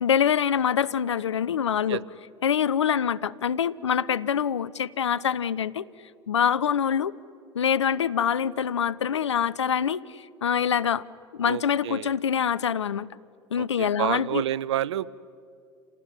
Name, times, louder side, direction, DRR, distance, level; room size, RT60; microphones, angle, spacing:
voice 1, 0.0-2.0 2.4-5.8 6.3-7.1 7.5-11.0 11.3-13.1 13.5-14.4, left 8 dB, 90° left, 19 dB, 0.6 m, -25 dB
voice 2, 11.4-12.1 13.6-15.1, right 12 dB, 80° right, 21 dB, 0.7 m, -29 dB
28.0 x 18.5 x 10.0 m, 2.3 s
hypercardioid pair, 80°, 15 cm